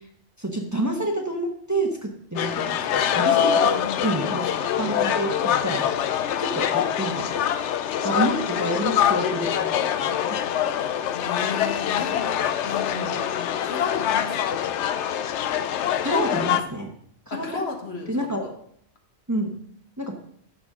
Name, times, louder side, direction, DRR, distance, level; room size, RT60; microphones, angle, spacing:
voice 1, 0.4-3.6 4.0-4.5 4.8-5.9 6.4-7.3 8.0-10.5 13.0-13.3 16.0-16.9 17.3-17.6 18.1-18.4 19.3-19.5 20.0-20.2, right 1 dB, 15° right, 2 dB, 1.0 m, -28 dB
sound 1, 2.4-16.6, left 9 dB, 85° left, 0.9 m, -24 dB
voice 2, 3.3-4.2 10.6-14.6 17.3-18.5, left 4 dB, 65° left, 3 dB, 1.6 m, -35 dB
12.0 x 7.0 x 3.7 m, 0.65 s
omnidirectional pair, 1.2 m